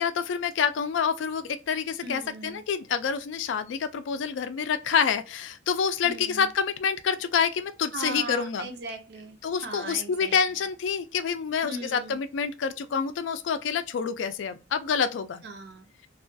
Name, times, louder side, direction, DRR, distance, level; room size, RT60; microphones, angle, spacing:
voice 1, 0.0-8.7 9.4-15.4, left 6 dB, 75° left, 0.3 m, -27 dB
voice 2, 2.0-2.6 6.0-6.5 7.9-9.4 9.6-10.4 11.6-12.2 15.4-15.9, right 2 dB, 60° right, 0.5 m, -38 dB
2.3 x 2.2 x 2.5 m
head